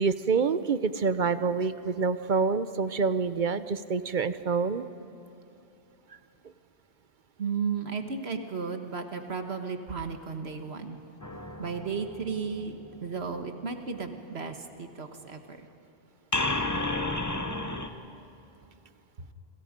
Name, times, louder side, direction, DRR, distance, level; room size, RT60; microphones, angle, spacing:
voice 1, 0.0-4.9, right 5 dB, 50° right, 12 dB, 0.8 m, -27 dB
voice 2, 7.4-11.0 11.6-12.7 13.0-15.7, right 5 dB, 70° right, 6 dB, 1.7 m, -34 dB
sound 1, 11.2-13.2 16.3-17.9, left 2 dB, 15° left, 1.0 m, -32 dB
29.0 x 26.5 x 5.2 m, 2.9 s
omnidirectional pair, 1.1 m